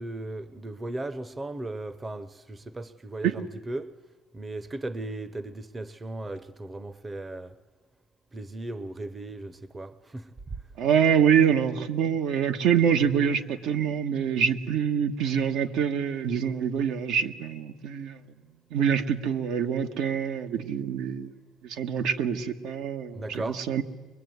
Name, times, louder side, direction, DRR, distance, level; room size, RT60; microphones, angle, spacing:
voice 1, 0.0-3.9 4.3-7.6 8.3-10.4 23.1-23.7, right 2 dB, 20° right, 0.8 m, -36 dB
voice 2, 10.8-18.2 18.7-21.3 21.6-23.8, right 8 dB, 75° right, 1.6 m, -25 dB
23.0 x 22.5 x 9.5 m
cardioid pair, 115°, 0 cm